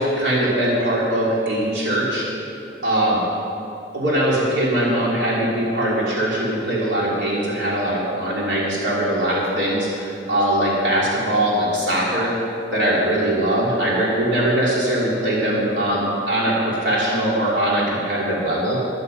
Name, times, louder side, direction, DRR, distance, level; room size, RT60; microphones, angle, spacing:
voice 1, 0.0-2.3 2.8-3.2 3.9-12.3 12.7-18.8, right 1 dB, 80° right, -6 dB, 3.3 m, -21 dB
13.5 x 12.0 x 5.4 m, 2.6 s
head